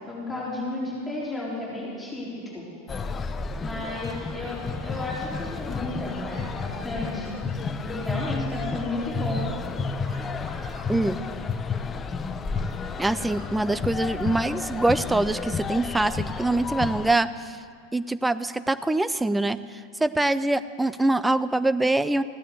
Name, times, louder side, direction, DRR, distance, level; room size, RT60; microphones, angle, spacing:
voice 1, 0.1-2.6 3.6-7.4 7.8-9.5, left 2 dB, 10° left, -6 dB, 4.2 m, -33 dB
sound 1, 2.9-17.2, left 4 dB, 25° left, 0.7 m, -31 dB
sound 2, 10.0-10.9 12.5-13.5 14.8-15.5, right 2 dB, 50° right, 3.3 m, -48 dB
voice 2, 13.0-17.6 17.9-22.2, right 2 dB, 10° right, 14 dB, 0.5 m, -24 dB
15.5 x 9.9 x 7.8 m, 2.2 s
hypercardioid pair, 90°, 0 cm